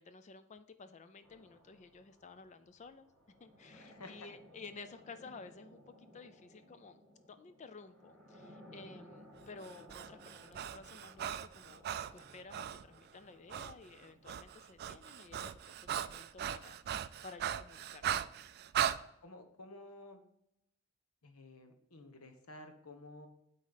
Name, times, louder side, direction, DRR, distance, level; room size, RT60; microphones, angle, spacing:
voice 1, 0.0-3.1 3.4-7.0 7.3-11.8 12.1-18.1, left 4 dB, 35° left, 11 dB, 0.4 m, -53 dB
sound 1, 1.2-15.0, equal, 5° left, 2.3 m, -59 dB
voice 2, 3.7-4.3 19.2-20.2 21.2-23.3, left 2 dB, 90° left, 7 dB, 1.0 m, -52 dB
Breathing, 9.6-12.8 13.5-13.7 14.0-19.0, right 9 dB, 45° right, 0.3 m, -38 dB
8.3 x 4.1 x 4.0 m, 0.78 s
head